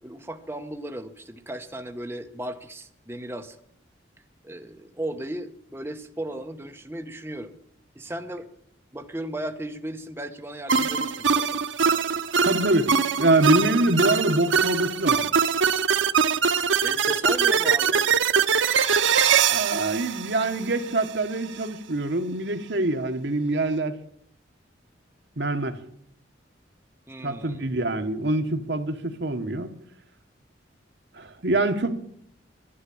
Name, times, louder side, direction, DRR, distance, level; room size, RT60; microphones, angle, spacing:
voice 1, 0.0-3.6 4.4-7.5 7.9-8.5 8.9-11.6 16.8-18.1 27.1-27.7, right 1 dB, 10° right, 1.0 m, -36 dB
sound 1, 10.7-21.1, right 6 dB, 75° right, 0.7 m, -22 dB
voice 2, 12.4-15.2 19.5-23.9 25.4-25.8 27.2-29.7 31.1-31.9, right 2 dB, 60° right, 1.3 m, -25 dB
11.5 x 11.0 x 8.5 m
head